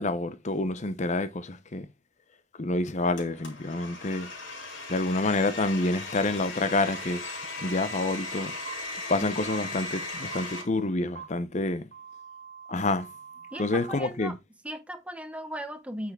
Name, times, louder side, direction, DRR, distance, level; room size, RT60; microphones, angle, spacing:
voice 1, 0.0-1.9 2.6-4.3 4.9-7.2 7.6-8.5 9.1-11.8 12.7-13.1 13.6-14.4, left 2 dB, 35° left, 0.7 m, -28 dB
Domestic sounds home sounds, 3.2-10.6, left 2 dB, 70° left, 3.3 m, -37 dB
sound 1, 8.7-8.8 9.5-9.6 10.3-10.4 11.2-11.3 11.9-14.0, right 7 dB, 50° right, 2.1 m, -44 dB
voice 2, 13.5-14.3 14.6-16.1, equal, 5° right, 0.9 m, -37 dB
8.8 x 5.9 x 3.6 m
head